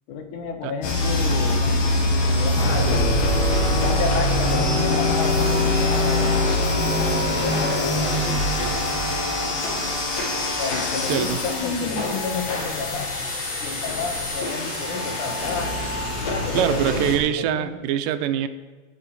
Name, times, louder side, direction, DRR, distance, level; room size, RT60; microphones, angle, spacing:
voice 1, 0.1-1.7 2.3-3.3 3.7-6.4 7.3-8.1 10.6-13.1 13.6-15.7 16.2-17.8, left 5 dB, 70° left, 5 dB, 2.8 m, -31 dB
sound 1, 0.8-17.2, left 1 dB, 90° left, 4.2 m, -25 dB
sound 2, 2.6-10.7, left 2 dB, 55° left, 1.8 m, -24 dB
voice 2, 16.5-18.5, right 10 dB, 85° right, 11 dB, 2.3 m, -23 dB
9.0 x 8.7 x 8.7 m, 1.3 s
omnidirectional pair, 3.8 m